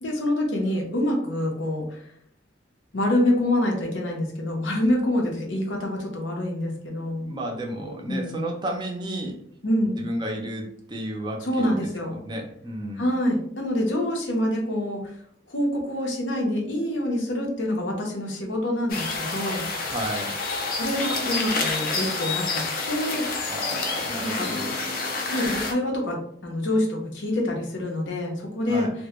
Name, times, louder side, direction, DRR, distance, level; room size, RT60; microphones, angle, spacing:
voice 1, 0.0-2.0 2.9-7.3 8.1-8.4 9.6-10.0 11.5-12.2 13.0-15.1 15.5-19.6 20.8-23.3 24.2-24.5 25.3-28.9, left 1 dB, 80° left, 0 dB, 0.7 m, -26 dB
voice 2, 7.0-9.4 9.8-11.8 12.1-13.1 19.8-20.4 23.5-24.9 28.7-28.9, right 1 dB, 25° right, 1 dB, 0.4 m, -33 dB
sound 1, 18.9-25.7, left 3 dB, 50° left, 0.4 m, -28 dB
2.1 x 2.1 x 2.9 m, 0.65 s
head